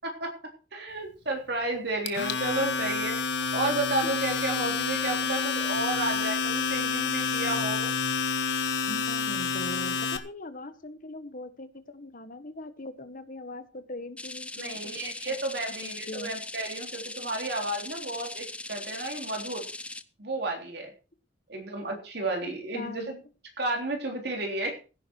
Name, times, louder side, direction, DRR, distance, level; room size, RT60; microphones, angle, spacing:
voice 1, 0.7-7.9 14.6-19.7 20.2-20.9 21.5-23.1 23.6-24.8, right 2 dB, 60° right, 2 dB, 3.5 m, -32 dB
Domestic sounds home sounds, 2.1-10.2, left 5 dB, 70° left, 1.4 m, -29 dB
voice 2, 8.9-15.7 16.1-16.3 22.7-23.2, left 2 dB, 50° left, 11 dB, 1.4 m, -41 dB
sound 1, 14.2-20.0, left 2 dB, 5° left, 0.6 m, -40 dB
16.0 x 10.0 x 4.6 m, 0.35 s
head